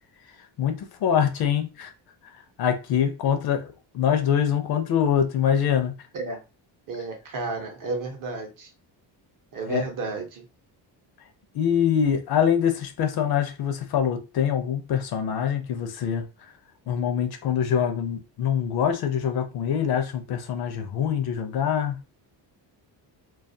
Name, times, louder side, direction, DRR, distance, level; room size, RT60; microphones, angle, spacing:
voice 1, 0.6-1.9 2.6-5.9 9.7-9.8 11.5-16.2 16.9-22.0, left 8 dB, 60° left, 0.5 m, -24 dB
voice 2, 6.9-8.7 9.5-10.5, right 3 dB, 50° right, 0.7 m, -32 dB
2.3 x 2.1 x 2.6 m
cardioid pair, 155°, 43 cm